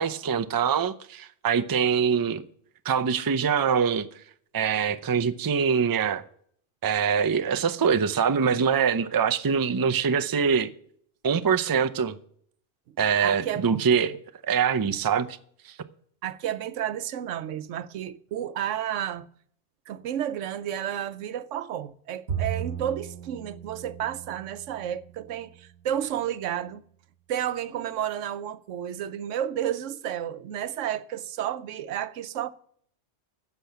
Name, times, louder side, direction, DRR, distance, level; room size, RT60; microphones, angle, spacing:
voice 1, 0.0-2.4 2.8-4.1 4.5-6.2 6.8-10.7 11.2-12.1 13.0-14.1 14.4-15.4 15.7-15.8, right 6 dB, 35° right, 0.3 m, -24 dB
voice 2, 13.2-13.9 16.2-19.3 19.9-26.8 27.3-32.5, right 10 dB, 90° right, 1.0 m, -31 dB
Bowed string instrument, 22.3-25.7, right 8 dB, 60° right, 1.4 m, -36 dB
10.0 x 6.9 x 8.0 m
omnidirectional pair, 1.2 m